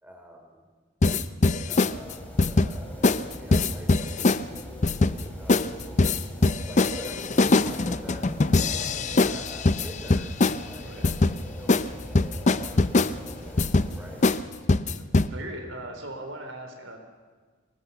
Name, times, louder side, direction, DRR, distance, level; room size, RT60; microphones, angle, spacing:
voice 1, 0.0-0.7 1.7-6.2 6.6-8.4 9.2-14.2, equal, 10° right, 2 dB, 3.2 m, -47 dB
sound 1, 1.0-1.9 2.4-2.7 3.0-3.2 3.5-4.4 4.8-5.2 5.5-5.7 6.0-10.6 11.0-11.3 11.7-11.9 12.1-13.1 13.6-13.9 14.2-14.4 14.7-15.3, left 3 dB, 35° left, 0.6 m, -22 dB
sound 2, 1.9-14.4, equal, 10° left, 3.7 m, -42 dB
voice 2, 8.8-9.2 10.8-11.1 14.8-17.0, right 1 dB, 85° right, 4 dB, 3.9 m, -39 dB
24.5 x 19.5 x 6.9 m, 1.4 s
head